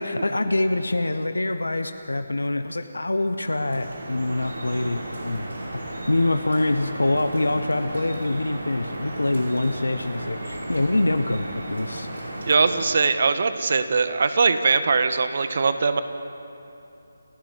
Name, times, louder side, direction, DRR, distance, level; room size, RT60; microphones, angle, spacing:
voice 1, 0.0-5.6 5.8-12.1, left 2 dB, 75° left, 8 dB, 1.2 m, -25 dB
Drip, 3.4-12.8, right 1 dB, 65° right, 5.6 m, -34 dB
voice 2, 12.5-16.0, right 4 dB, 50° right, 10 dB, 1.4 m, -21 dB
29.5 x 13.0 x 9.6 m, 2.8 s
figure-of-eight pair, 150°, 0 cm